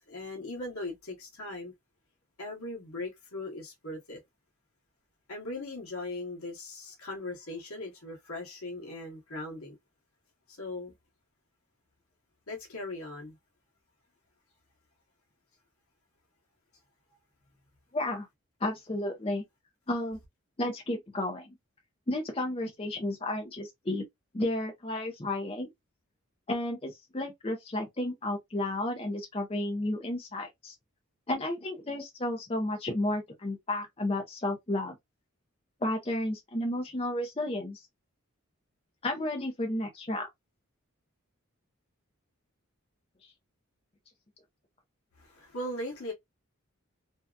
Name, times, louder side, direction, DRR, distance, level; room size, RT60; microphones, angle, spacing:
voice 1, 0.1-1.7 2.4-4.2 5.3-9.8 10.5-10.9 12.5-13.4 45.2-46.1, left 2 dB, 80° left, 1.0 m, -39 dB
voice 2, 17.9-18.3 18.6-19.4 19.9-20.2 20.6-21.5 22.1-24.0 24.3-25.7 26.5-30.7 31.3-34.9 35.8-37.8 39.0-40.3, left 1 dB, 25° left, 0.6 m, -32 dB
2.7 x 2.3 x 2.2 m
head